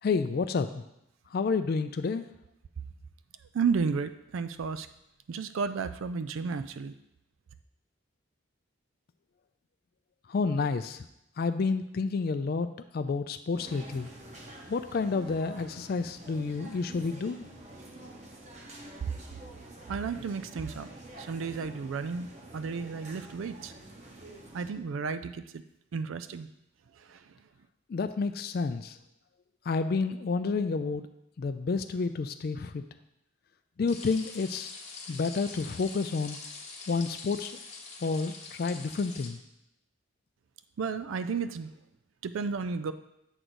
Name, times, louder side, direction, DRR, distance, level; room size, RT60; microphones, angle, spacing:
voice 1, 0.0-0.8 1.3-2.3 10.3-11.1 11.4-12.7 12.9-14.1 14.7-17.5 27.9-29.0 29.7-31.1 31.4-32.8 33.8-34.7 35.1-36.4 36.9-37.5 38.0-39.4, left 4 dB, 50° left, 9 dB, 0.3 m, -30 dB
voice 2, 3.5-4.9 5.3-6.9 19.9-20.9 21.2-22.3 22.5-23.7 24.5-25.6 25.9-26.5 27.0-27.3 40.8-41.7 42.2-42.9, right 5 dB, 75° right, 12 dB, 0.4 m, -32 dB
sound 1, 13.5-24.7, right 2 dB, 35° right, 1.0 m, -48 dB
sound 2, 33.9-39.3, left 4 dB, 30° left, 1.0 m, -44 dB
8.0 x 3.8 x 6.2 m, 0.83 s
head